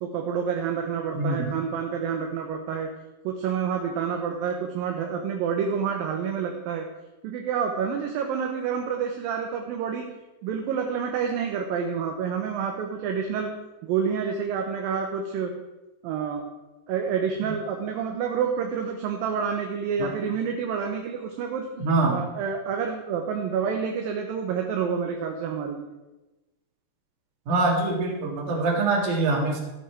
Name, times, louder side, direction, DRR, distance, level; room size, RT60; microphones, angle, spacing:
voice 1, 0.0-2.9 3.2-6.9 7.2-10.1 10.4-13.5 13.8-15.5 16.0-16.4 16.9-21.7 22.1-25.9, right 6 dB, 75° right, 3 dB, 2.6 m, -28 dB
voice 2, 1.1-1.5 20.0-20.1 21.8-22.2 27.5-29.6, right 3 dB, 55° right, 0 dB, 3.4 m, -24 dB
14.0 x 9.5 x 4.5 m, 1.1 s
omnidirectional pair, 4.4 m